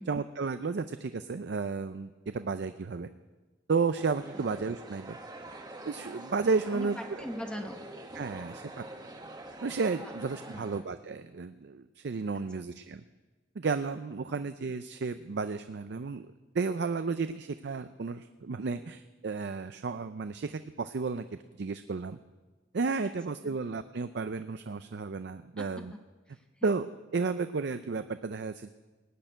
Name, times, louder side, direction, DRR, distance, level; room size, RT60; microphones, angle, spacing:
voice 1, 0.1-3.1 3.7-5.2 5.9-7.0 8.1-8.8 9.6-13.0 13.6-16.2 16.5-22.2 22.7-25.9 26.6-26.9 27.1-28.7, right 4 dB, 60° right, 11 dB, 0.5 m, -32 dB
sound 1, 4.0-10.8, right 1 dB, 20° right, 1.1 m, -45 dB
voice 2, 6.7-7.8 10.0-10.1 10.5-10.8 14.3-14.5 23.0-23.1 23.4-23.6 25.6-25.8 26.3-26.8, equal, 5° left, 3 dB, 0.9 m, -42 dB
19.0 x 6.6 x 9.1 m, 1.2 s
head